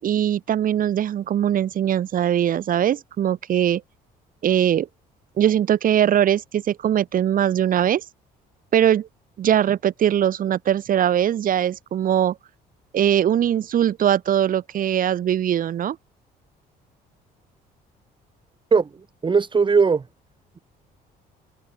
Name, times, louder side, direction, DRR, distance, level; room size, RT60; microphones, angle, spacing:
voice 1, 0.0-3.8 4.4-4.9 5.4-8.0 8.7-9.1 9.4-12.4 12.9-16.0, right 10 dB, 55° right, 4.1 m, -21 dB
voice 2, 19.2-20.0, right 5 dB, 30° right, 6.1 m, -18 dB
cardioid pair, 110°, 17 cm